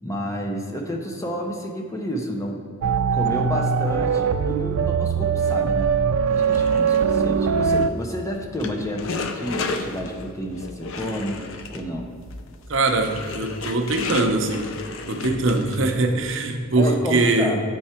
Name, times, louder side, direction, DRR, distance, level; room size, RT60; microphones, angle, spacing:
voice 1, 0.0-2.6 3.1-5.9 6.3-11.4 11.7-12.1 16.8-17.6, equal, 15° left, 1 dB, 0.6 m, -30 dB
sound 1, 2.8-7.9, right 6 dB, 75° right, 0.3 m, -21 dB
sound 2, 6.3-16.0, left 3 dB, 65° left, 0.6 m, -34 dB
voice 2, 12.7-14.7 15.1-17.6, right 2 dB, 60° right, 4 dB, 0.7 m, -22 dB
8.5 x 4.6 x 4.4 m, 2.1 s
head